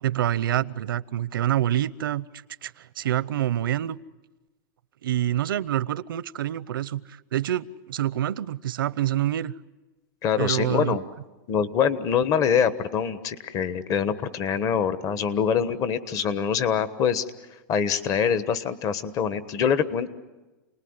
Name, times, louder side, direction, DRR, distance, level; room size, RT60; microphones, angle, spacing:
voice 1, 0.0-2.3 2.6-4.0 5.0-9.5 10.4-11.0, right 12 dB, 90° right, 18 dB, 0.8 m, -26 dB
voice 2, 10.2-11.0 11.5-17.2 17.7-20.1, left 7 dB, 30° left, 13 dB, 1.3 m, -24 dB
29.0 x 20.0 x 9.7 m, 1.2 s
supercardioid pair, 150°, 11 cm